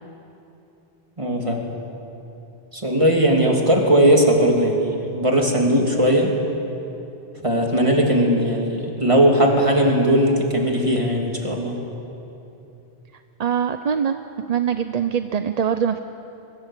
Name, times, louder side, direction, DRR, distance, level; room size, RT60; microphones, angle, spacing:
voice 1, 1.2-1.6 2.7-6.3 7.4-11.8, right 1 dB, 30° right, 0 dB, 2.9 m, -18 dB
voice 2, 13.4-14.2 14.5-16.0, right 8 dB, 45° right, 9 dB, 0.6 m, -23 dB
23.5 x 21.0 x 7.4 m, 2.9 s
omnidirectional pair, 1.1 m